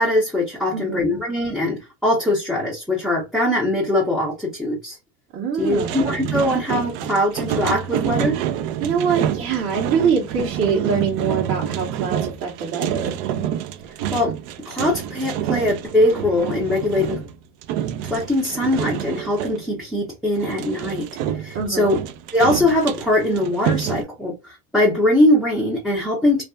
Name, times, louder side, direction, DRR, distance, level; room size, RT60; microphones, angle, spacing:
voice 1, 0.0-5.0 5.6-8.4 14.1-14.3 14.7-17.3 18.0-21.1 21.3-22.0 22.3-26.4, left 1 dB, ahead, 0.5 m, -21 dB
voice 2, 0.7-1.2 5.3-5.9 8.8-13.1 21.5-22.0, right 6 dB, 30° right, 0.9 m, -24 dB
sound 1, 5.6-19.6 20.3-24.0, right 10 dB, 60° right, 0.5 m, -28 dB
2.5 x 2.2 x 2.2 m
supercardioid pair, 100°, 46 cm